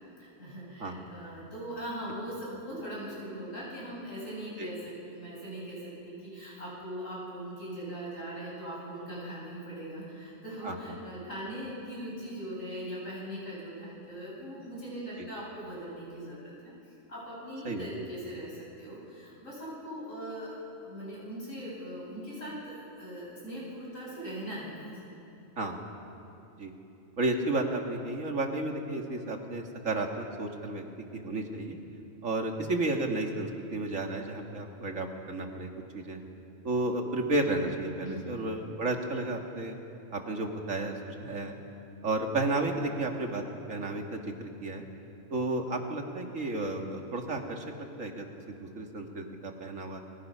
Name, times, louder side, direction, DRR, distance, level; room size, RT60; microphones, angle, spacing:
voice 1, 0.2-16.7 17.1-25.0 38.0-38.5, equal, 75° left, -6 dB, 8.5 m, -40 dB
voice 2, 27.2-30.8 31.1-31.8 32.2-36.2 36.6-39.7 40.1-41.6 42.0-43.4 43.7-44.8 45.3-47.6 48.0-50.0, right 2 dB, 75° right, 2 dB, 2.5 m, -32 dB
30.0 x 22.5 x 5.7 m, 2.8 s
omnidirectional pair, 1.4 m